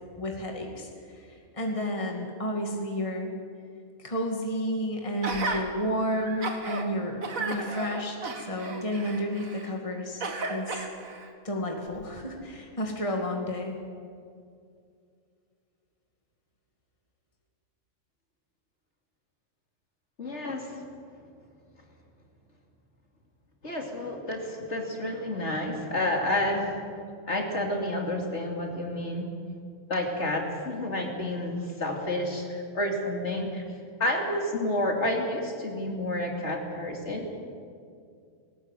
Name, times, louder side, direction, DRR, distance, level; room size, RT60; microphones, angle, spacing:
voice 1, 0.2-3.3 4.0-8.2 8.5-10.2 10.5-10.8 11.4-13.8, equal, 25° left, 1 dB, 2.4 m, -31 dB
Gasp, 5.2-5.6 6.2-6.8 7.2-9.7 10.2-11.3 11.9-12.0, right 3 dB, 90° right, 2.4 m, -34 dB
voice 2, 20.2-20.7 23.6-26.7 27.3-29.3 29.9-33.6 34.0-37.4, left 1 dB, 55° left, 1 dB, 3.0 m, -30 dB
19.0 x 18.5 x 9.1 m, 2.3 s
omnidirectional pair, 1.4 m